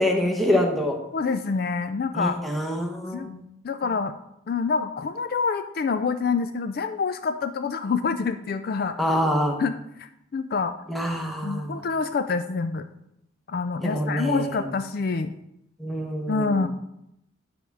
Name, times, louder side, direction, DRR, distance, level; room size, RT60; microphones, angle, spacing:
voice 1, 0.0-1.0 2.1-3.4 9.0-9.6 10.9-11.8 13.8-14.6 15.8-16.6, equal, ahead, 2 dB, 0.9 m, -25 dB
voice 2, 1.1-2.4 3.1-3.3 3.6-4.1 4.5-9.0 9.6-10.7 11.4-12.9 13.5-15.3 16.3-16.7, left 4 dB, 50° left, 9 dB, 0.3 m, -27 dB
9.5 x 3.5 x 6.0 m, 0.81 s
head